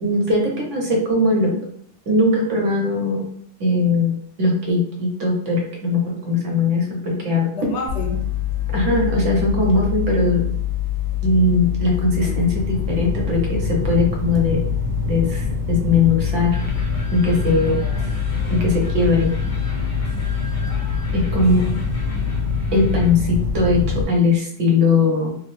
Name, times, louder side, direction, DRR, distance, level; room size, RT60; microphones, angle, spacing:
voice 1, 0.0-1.5 2.1-3.3 3.6-4.1 4.4-7.4 8.7-10.5 11.2-14.6 15.0-16.6 17.1-17.8 18.5-19.3 21.1-21.8 22.7-25.4, left 2 dB, 85° right, -1 dB, 1.2 m, -19 dB
voice 2, 7.5-8.3 17.7-18.8 21.3-21.9, left 2 dB, 75° left, 1 dB, 1.0 m, -33 dB
sound 1, 7.9-24.0, left 6 dB, 55° right, 0.5 m, -24 dB
sound 2, 16.5-23.1, left 1 dB, 45° left, 0.9 m, -40 dB
3.2 x 2.0 x 3.1 m, 0.62 s
omnidirectional pair, 1.2 m